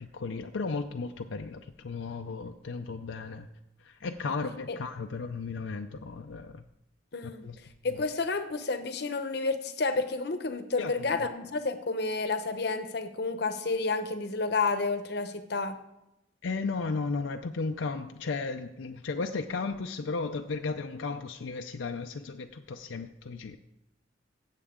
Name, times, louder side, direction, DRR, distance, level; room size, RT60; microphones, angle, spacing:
voice 1, 0.0-3.5 3.8-6.6 7.2-7.6 10.8-11.1 16.4-23.6, left 4 dB, 80° left, 6 dB, 0.5 m, -35 dB
voice 2, 7.1-7.5 7.8-15.8, left 3 dB, 60° left, 9 dB, 0.9 m, -30 dB
15.5 x 7.5 x 3.7 m, 0.90 s
head